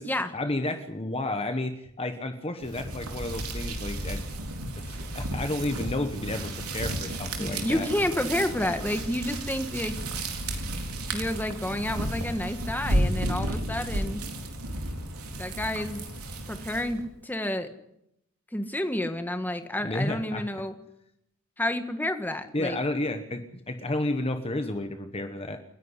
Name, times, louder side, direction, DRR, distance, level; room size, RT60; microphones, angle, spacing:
voice 1, 0.3-4.2 4.8-7.9 19.8-20.5 22.5-25.6, left 2 dB, 25° left, 7 dB, 1.1 m, -31 dB
sound 1, 2.6-17.1, right 1 dB, 90° right, 3.9 m, -32 dB
voice 2, 7.4-10.0 11.1-14.2 15.3-16.1 16.5-17.7 18.5-20.7 21.6-22.8, left 1 dB, 10° left, 8 dB, 1.5 m, -30 dB
29.0 x 11.0 x 9.8 m, 0.80 s
head